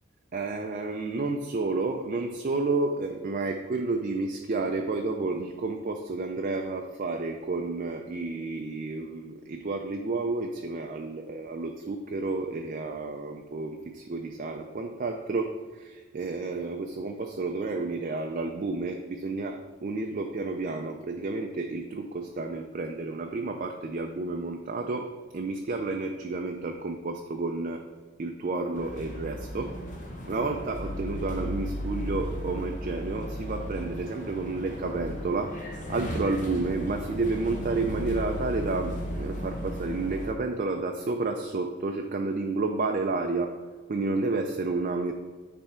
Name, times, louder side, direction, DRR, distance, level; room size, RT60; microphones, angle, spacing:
voice 1, 0.3-27.8 28.2-29.7 30.3-43.5 43.9-45.1, right 3 dB, 35° right, 3 dB, 0.4 m, -31 dB
sound 1, 28.7-40.3, equal, 35° left, 0.7 m, -35 dB
9.5 x 3.5 x 4.3 m, 1.4 s
head